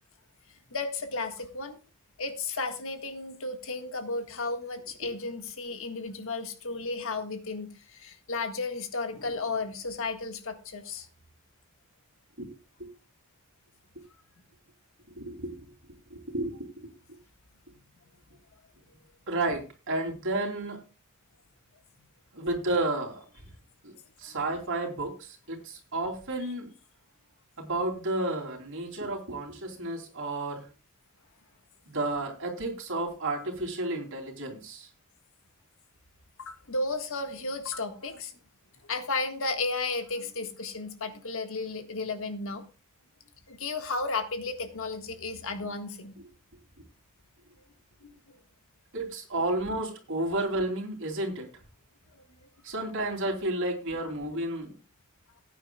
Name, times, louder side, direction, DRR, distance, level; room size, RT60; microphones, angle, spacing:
voice 1, 0.7-1.8 2.2-11.1 24.2-24.3 36.4-38.3 38.8-42.6 43.5-46.1 48.0-48.1, left 3 dB, 65° left, 7 dB, 1.7 m, -33 dB
voice 2, 15.1-15.6 16.1-16.9 19.3-20.8 22.3-23.2 23.8-23.9 24.2-26.7 27.6-30.7 31.8-34.9 48.9-51.5 52.6-54.7, right 2 dB, 60° right, 0 dB, 3.2 m, -32 dB
18.5 x 9.0 x 2.3 m, 0.31 s
head